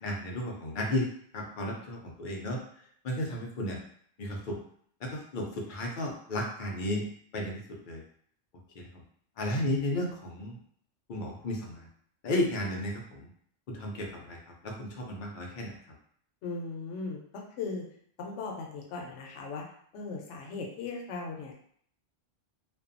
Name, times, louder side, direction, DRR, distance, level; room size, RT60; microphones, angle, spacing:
voice 1, 0.0-1.1 1.3-2.6 3.0-3.8 4.2-4.6 5.0-7.1 7.3-7.6 7.9-8.0 8.8-9.0 9.4-10.6 11.1-11.9 12.2-13.3 13.7-14.4 14.6-15.8, left 1 dB, 55° left, 0 dB, 0.5 m, -33 dB
voice 2, 16.4-17.8 18.2-19.6 19.9-21.5, left 4 dB, 75° left, 0 dB, 0.9 m, -38 dB
2.6 x 2.2 x 2.5 m, 0.62 s
omnidirectional pair, 1.3 m